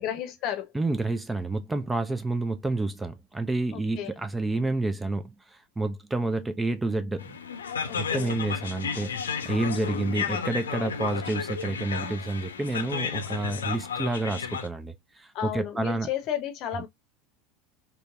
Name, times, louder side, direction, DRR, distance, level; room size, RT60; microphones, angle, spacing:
voice 1, 0.0-0.7 3.7-4.1 7.8-8.3 9.7-10.0 15.3-16.9, left 10 dB, 45° left, 0.7 m, -33 dB
voice 2, 0.7-7.4 8.0-16.1, right 2 dB, 10° right, 0.4 m, -29 dB
sound 1, 7.2-14.7, left 6 dB, 75° left, 0.4 m, -33 dB
3.8 x 2.1 x 2.2 m
figure-of-eight pair, 75°, 0 cm